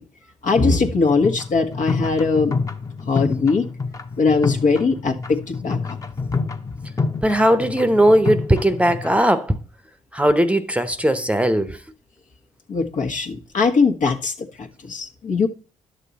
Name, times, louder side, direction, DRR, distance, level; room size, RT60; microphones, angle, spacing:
voice 1, 0.4-2.5 3.1-3.7 4.2-6.0 12.7-15.5, left 4 dB, 60° left, 1.5 m, -20 dB
sound 1, 0.8-9.2, left 4 dB, 25° left, 1.1 m, -28 dB
voice 2, 7.2-9.6 10.1-11.8, right 1 dB, 10° right, 0.9 m, -18 dB
10.5 x 6.6 x 4.1 m
supercardioid pair, 55°, 15 cm